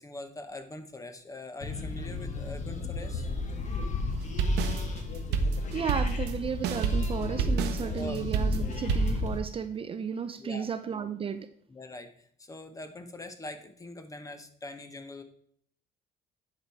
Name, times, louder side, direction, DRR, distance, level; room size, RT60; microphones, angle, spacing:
voice 1, 0.0-3.3 8.0-8.2 10.4-10.7 11.7-15.2, left 2 dB, 20° left, 9 dB, 1.1 m, -43 dB
sound 1, 1.6-9.4, left 3 dB, 45° left, 1.6 m, -35 dB
sound 2, 4.1-9.2, right 3 dB, 85° right, 0.9 m, -28 dB
voice 2, 5.7-11.5, right 7 dB, 35° right, 11 dB, 0.5 m, -34 dB
9.9 x 4.7 x 4.8 m, 0.63 s
cardioid pair, 110°, 17 cm